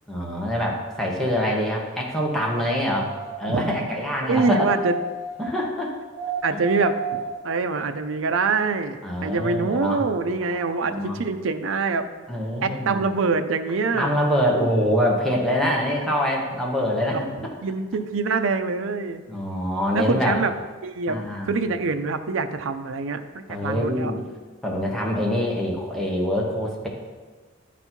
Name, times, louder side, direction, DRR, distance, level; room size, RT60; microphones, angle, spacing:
voice 1, 0.1-3.1 3.4-4.7 5.4-5.9 6.5-6.6 9.0-10.0 10.4-11.2 12.3-13.0 13.9-17.5 19.3-20.4 21.1-21.5 23.5-24.2 24.6-26.9, equal, ahead, -2 dB, 1.2 m, -25 dB
sound 1, 2.4-3.4 4.4-5.5 6.1-7.4 8.0-8.1, right 3 dB, 40° right, 1.8 m, -32 dB
voice 2, 3.5-3.8 4.2-5.0 6.4-7.0 7.4-12.1 12.6-14.1 17.1-17.2 17.6-19.2 19.9-20.5 20.8-21.2 21.5-24.1, right 4 dB, 80° right, 9 dB, 0.5 m, -25 dB
10.5 x 4.1 x 4.5 m, 1.3 s
head